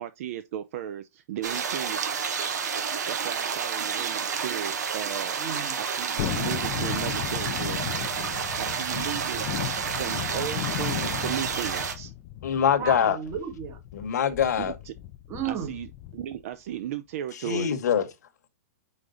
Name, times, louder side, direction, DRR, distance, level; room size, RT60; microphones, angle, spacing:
voice 1, 0.0-2.1 3.1-5.4 5.8-7.8 8.6-9.5 9.9-12.1 14.6-14.9 15.4-17.7, right 11 dB, 55° right, 0.5 m, -35 dB
sound 1, 1.4-11.9, right 6 dB, 85° right, 1.4 m, -30 dB
voice 2, 5.4-5.8 12.8-13.8 15.3-15.7, right 8 dB, 30° right, 1.4 m, -33 dB
Thunderstorm, 6.2-16.4 16.7-16.8, left 14 dB, 40° left, 0.4 m, -35 dB
voice 3, 12.4-13.2 13.9-14.7 17.4-18.0, left 8 dB, 75° left, 1.2 m, -23 dB
5.2 x 4.9 x 3.8 m
hypercardioid pair, 145°, 9 cm